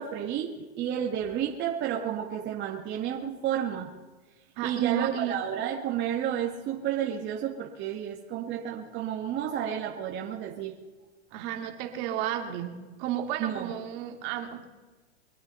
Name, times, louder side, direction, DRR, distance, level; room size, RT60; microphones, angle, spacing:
voice 1, 0.0-3.9 4.6-10.7 13.4-13.7, right 9 dB, 30° right, -1 dB, 2.1 m, -31 dB
voice 2, 4.6-5.4 11.3-12.7 13.0-14.6, right 10 dB, 50° right, 4 dB, 2.6 m, -32 dB
24.5 x 8.8 x 5.7 m, 1.3 s
hypercardioid pair, 125°, 34 cm